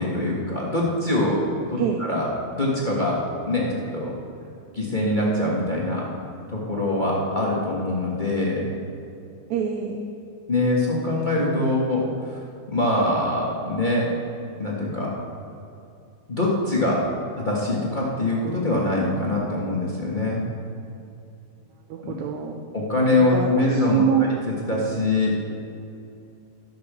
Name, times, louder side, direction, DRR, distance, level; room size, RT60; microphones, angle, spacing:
voice 1, 0.0-1.4 1.7-1.8 2.1-2.2 2.5-3.2 3.5-4.1 4.7-6.1 6.5-8.7 10.5-12.4 12.7-14.1 14.6-15.1 16.3-17.0 17.4-20.4 22.0-22.1 22.7-24.0 24.6-25.3, left 2 dB, 30° left, -5 dB, 0.9 m, -23 dB
voice 2, 9.5-10.0 21.9-22.6 23.3-24.3, right 9 dB, 75° right, 3 dB, 1.9 m, -24 dB
13.5 x 6.1 x 6.7 m, 2.6 s
omnidirectional pair, 3.4 m